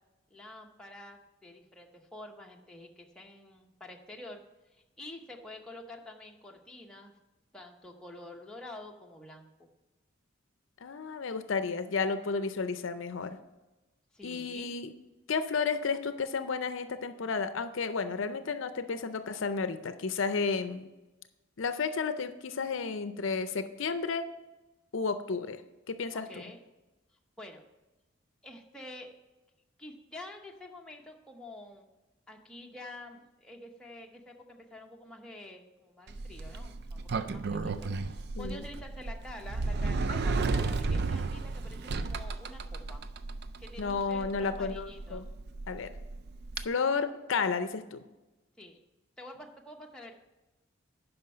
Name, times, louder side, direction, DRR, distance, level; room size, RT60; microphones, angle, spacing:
voice 1, 0.3-4.4 4.7-7.1 7.5-9.7 14.1-14.7 26.1-26.6 27.4-27.6 28.4-29.2 29.8-31.9 32.3-43.0 43.6-45.3 48.6-48.8 49.2-50.1, left 1 dB, 5° left, 0 dB, 0.8 m, -48 dB
voice 2, 10.8-13.4 14.2-14.9 15.3-20.9 21.6-24.3 24.9-25.6 25.9-26.3 38.4-38.6 43.8-45.3 45.7-45.9 46.6-48.0, left 5 dB, 65° left, 10 dB, 0.5 m, -32 dB
Sliding door, 36.1-46.6, right 3 dB, 50° right, 0.4 m, -34 dB
9.6 x 5.6 x 5.5 m, 1.1 s
head